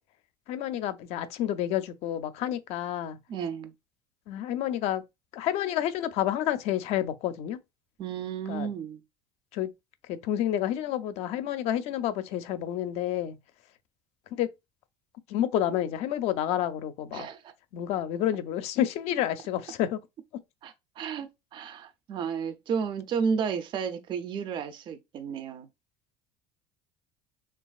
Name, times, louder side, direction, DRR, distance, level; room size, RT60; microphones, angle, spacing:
voice 1, 0.5-3.2 4.3-5.0 5.3-7.6 8.5-8.7 9.5-9.7 10.1-13.4 14.4-14.5 15.3-17.3 17.7-20.0, left 11 dB, 65° left, 0.4 m, -29 dB
voice 2, 3.3-3.7 8.0-9.0 17.1-17.5 20.6-25.7, right 6 dB, 40° right, 0.4 m, -32 dB
3.0 x 2.4 x 2.3 m
supercardioid pair, 95°, 12 cm